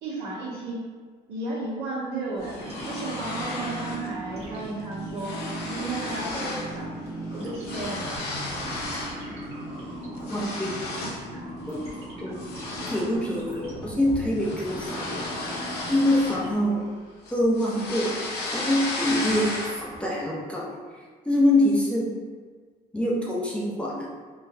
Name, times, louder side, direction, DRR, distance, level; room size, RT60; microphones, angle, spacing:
voice 1, 0.0-0.8 1.3-6.9 7.3-8.2, right 2 dB, 80° right, -8 dB, 1.4 m, -34 dB
sound 1, 2.4-4.1 4.4-4.7 4.9-6.7 7.0-9.2 9.6-11.3 11.7-11.9 12.4-16.9 17.2-20.0, left 2 dB, 75° left, 0.8 m, -34 dB
sound 2, 2.4-16.5, right 1 dB, 40° right, 1.4 m, -38 dB
sound 3, 5.3-10.4, equal, 20° right, 1.0 m, -43 dB
voice 2, 10.3-10.8 11.7-11.8 12.2-12.4 12.9-15.1 15.9-16.9 17.3-18.2 18.5-22.1 22.9-24.1, left 1 dB, 5° left, -5 dB, 0.6 m, -25 dB
3.8 x 2.5 x 2.7 m, 1.5 s
cardioid pair, 110°, 17 cm